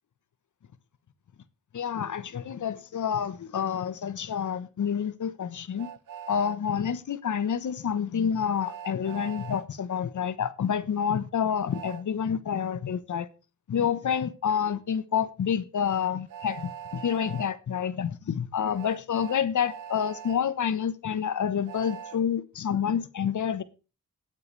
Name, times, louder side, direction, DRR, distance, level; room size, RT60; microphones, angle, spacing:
voice 1, 1.7-5.9 6.3-13.3 13.7-23.6, left 8 dB, 70° left, 1.2 m, -28 dB
Train, 5.8-6.6 8.6-9.7 11.7-12.0 14.1-14.2 16.3-17.5 18.7-20.4 21.7-22.2, right 9 dB, 90° right, 0.8 m, -42 dB
19.0 x 8.2 x 3.3 m
cardioid pair, 65°, 31 cm